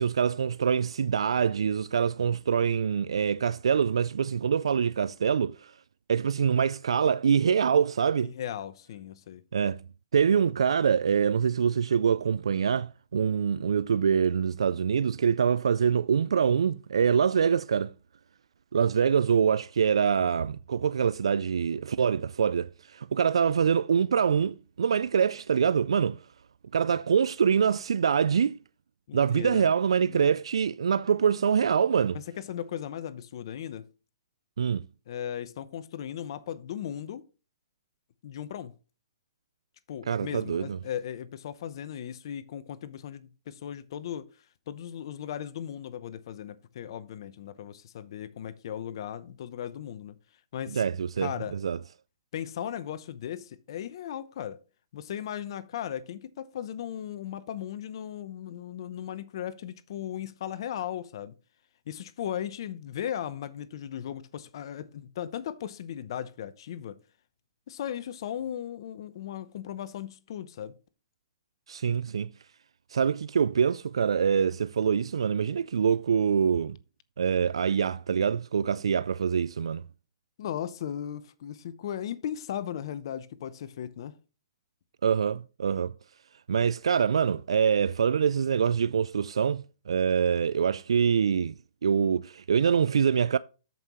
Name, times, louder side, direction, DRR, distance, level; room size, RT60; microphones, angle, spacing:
voice 1, 0.0-5.7 6.1-8.3 9.5-9.8 10.1-17.9 18.7-26.2 26.7-28.6 29.1-32.2 34.6-34.8 40.1-40.8 50.7-51.8 71.7-72.3 72.9-76.8 77.2-79.9 85.0-85.9 86.5-91.5 91.8-93.4, right 7 dB, 80° right, 0.3 m, -25 dB
voice 2, 8.2-9.4 29.1-29.7 30.1-30.3 32.1-33.9 35.1-37.2 38.2-38.7 39.9-44.3 44.7-50.2 50.5-50.8 51.2-51.6 52.3-54.6 54.9-61.3 61.9-67.0 67.7-70.7 80.4-84.2, left 10 dB, 60° left, 0.8 m, -37 dB
13.5 x 5.4 x 3.0 m
hypercardioid pair, 130°, 3 cm